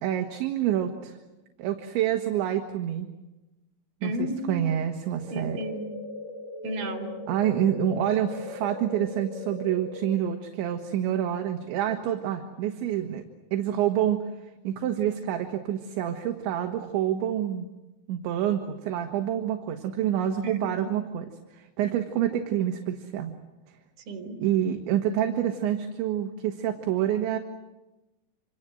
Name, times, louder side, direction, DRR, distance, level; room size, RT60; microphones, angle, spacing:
voice 1, 0.0-1.2 1.6-3.1 4.0-5.6 7.3-13.2 13.5-14.2 14.7-17.7 18.1-21.3 21.5-23.3 24.4-27.4, right 10 dB, 70° right, 5 dB, 3.7 m, -27 dB
voice 2, 4.0-4.8 5.3-5.9 6.6-7.1 20.4-20.9 24.1-24.4, equal, 50° right, 4 dB, 5.6 m, -33 dB
sound 1, 5.1-10.2, left 2 dB, 35° left, 4.5 m, -39 dB
27.5 x 26.5 x 7.8 m, 1.0 s
omnidirectional pair, 5.6 m